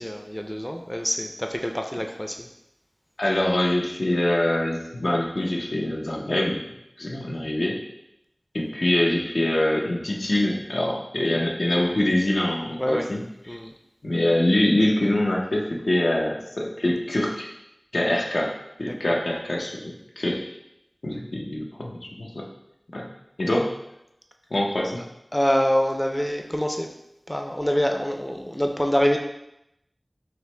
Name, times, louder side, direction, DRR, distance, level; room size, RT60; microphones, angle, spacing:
voice 1, 0.0-2.5 12.8-13.1 13.5-13.7 18.9-19.0 25.0-25.1 25.3-26.9 27.3-29.2, equal, 15° left, 3 dB, 0.4 m, -25 dB
voice 2, 3.2-6.6 7.0-7.8 8.5-13.2 14.0-17.5 17.9-20.4 21.0-22.5 22.9-23.1 23.4-23.7 24.5-25.0, left 1 dB, 90° left, -2 dB, 0.6 m, -24 dB
5.8 x 2.0 x 3.2 m, 0.84 s
wide cardioid pair, 50°, 0 cm